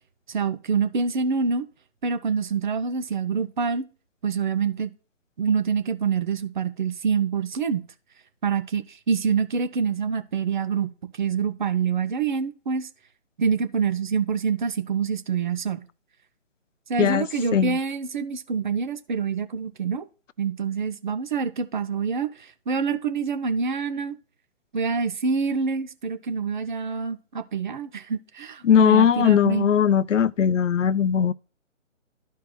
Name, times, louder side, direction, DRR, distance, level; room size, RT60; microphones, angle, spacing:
voice 1, 0.3-1.7 2.0-3.9 4.2-4.9 5.4-7.8 8.4-10.9 11.2-12.9 13.4-15.8 16.9-20.1 20.4-24.1 24.7-29.7, right 6 dB, 40° right, 0.6 m, -26 dB
voice 2, 28.6-31.3, left 8 dB, 75° left, 0.5 m, -19 dB
13.0 x 4.6 x 2.2 m
figure-of-eight pair, 145°, 38 cm